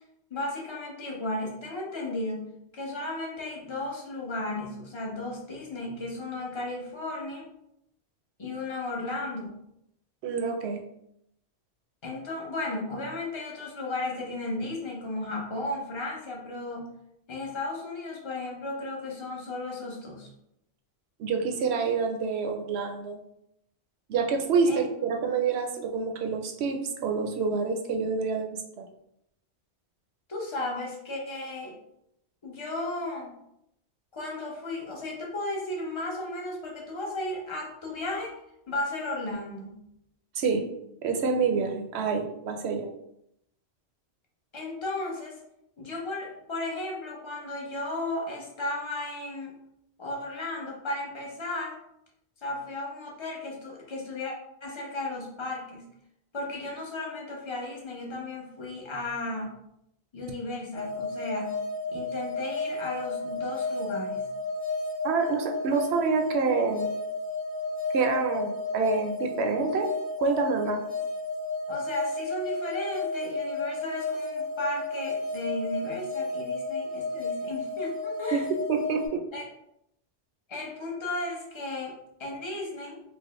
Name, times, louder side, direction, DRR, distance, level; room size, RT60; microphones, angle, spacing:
voice 1, 0.3-7.5 8.4-9.6 12.0-16.9 17.3-20.3 24.7-24.8 30.3-31.8 32.4-33.4 34.1-38.3 38.7-39.8 44.5-45.4 45.8-49.5 50.0-51.8 52.4-54.3 54.6-55.8 56.3-59.5 60.1-61.6 61.9-64.3 71.7-78.4 79.3-79.4 80.5-83.0, left 2 dB, 30° left, -2 dB, 0.7 m, -35 dB
voice 2, 10.2-10.8 21.2-23.2 24.1-28.8 40.4-40.6 41.0-42.9 65.0-66.9 67.9-69.9 70.2-70.8 78.3-78.4 78.7-79.2, right 5 dB, 75° right, 3 dB, 0.8 m, -27 dB
sound 1, 60.7-79.1, left 3 dB, 80° left, 1.4 m, -32 dB
4.6 x 2.1 x 3.1 m, 0.79 s
omnidirectional pair, 1.2 m